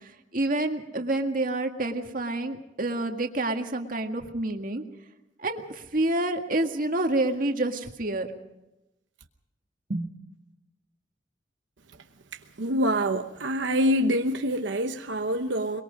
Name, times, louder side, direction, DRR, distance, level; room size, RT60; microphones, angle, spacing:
voice 1, 0.3-4.8 5.4-8.3 9.9-10.0, right 2 dB, 50° right, 1.9 m, -28 dB
voice 2, 12.6-15.8, equal, 90° right, 1.0 m, -25 dB
23.0 x 22.5 x 5.2 m
head